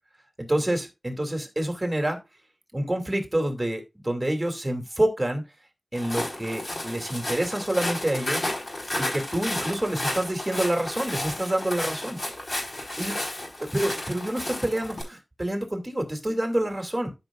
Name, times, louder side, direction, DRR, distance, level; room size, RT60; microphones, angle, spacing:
voice 1, 0.4-2.2 2.7-5.4 5.9-8.5 9.0-12.2 13.0-13.2 13.6-17.1, right 1 dB, 20° right, 3 dB, 2.8 m, -27 dB
Walk footsteps, 5.9-15.0, left 1 dB, 55° left, 4.6 m, -32 dB
13.0 x 6.0 x 2.5 m, 0.24 s
wide cardioid pair, 65°, 0 cm